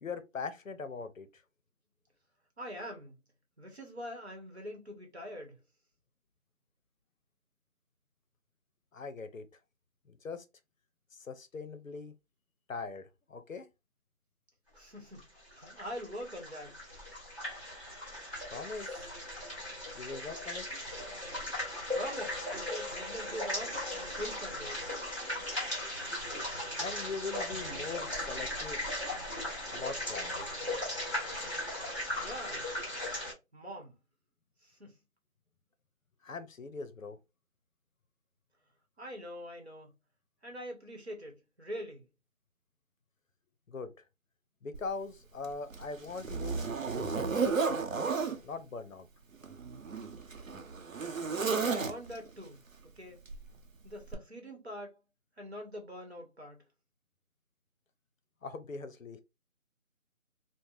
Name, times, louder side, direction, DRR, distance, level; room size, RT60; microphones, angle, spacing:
voice 1, 0.0-1.4 8.9-9.5 10.1-10.4 11.1-12.1 12.7-13.7 18.5-19.1 19.9-20.7 26.8-28.8 29.7-30.3 36.2-37.2 43.7-43.9 44.6-46.7 46.9-47.6 48.4-49.1 58.4-59.2, left 4 dB, 65° left, 0.6 m, -41 dB
voice 2, 2.6-3.2 3.6-5.6 14.7-15.3 15.5-16.8 21.9-24.9 32.2-32.9 33.5-33.9 34.6-35.0 39.0-40.0 40.4-42.0 51.4-53.2 53.8-55.0 55.4-56.6, equal, 50° right, 1.0 m, -44 dB
sound 1, 15.2-33.3, left 1 dB, 20° right, 1.4 m, -38 dB
Zipper (clothing), 44.7-44.9 45.4-48.4 49.3-52.3 53.3-53.5 54.1-54.2, right 5 dB, 65° right, 0.7 m, -33 dB
3.2 x 2.1 x 2.4 m
figure-of-eight pair, 180°, 42 cm